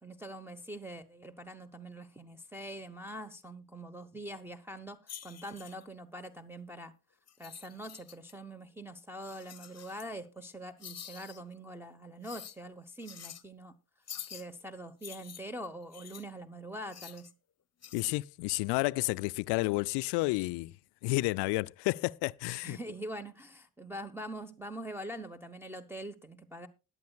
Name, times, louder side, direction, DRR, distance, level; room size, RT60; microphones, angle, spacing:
voice 1, 0.0-6.9 7.4-13.8 14.3-17.3 22.6-26.7, right 1 dB, 5° right, 1.1 m, -44 dB
sound 1, 5.1-5.9 7.3-8.3 9.2-10.1 10.8-11.4 12.2-12.6 13.0-13.4 14.1-14.5 15.0-16.3 16.9-17.3 17.8-18.0, left 9 dB, 35° left, 0.9 m, -47 dB
voice 2, 17.9-20.7 21.0-22.8, left 23 dB, 60° left, 0.5 m, -31 dB
20.5 x 8.1 x 2.3 m
hypercardioid pair, 45°, 45 cm